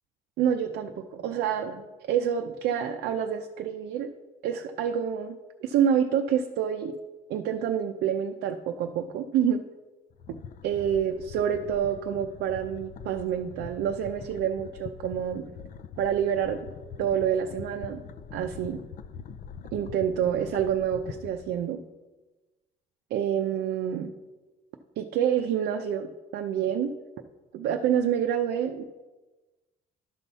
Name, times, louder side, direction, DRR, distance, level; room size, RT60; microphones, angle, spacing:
voice 1, 0.4-4.1 4.4-6.9 7.3-9.6 10.3-10.4 10.6-15.4 16.0-16.6 17.0-18.0 18.3-18.8 19.7-21.8 23.1-24.1 25.0-26.9 27.5-28.8, right 9 dB, 80° right, 5 dB, 0.6 m, -27 dB
sound 1, 10.1-21.7, left 7 dB, 55° left, 0.6 m, -44 dB
12.0 x 5.5 x 4.1 m, 1.2 s
cardioid pair, 110°, 17 cm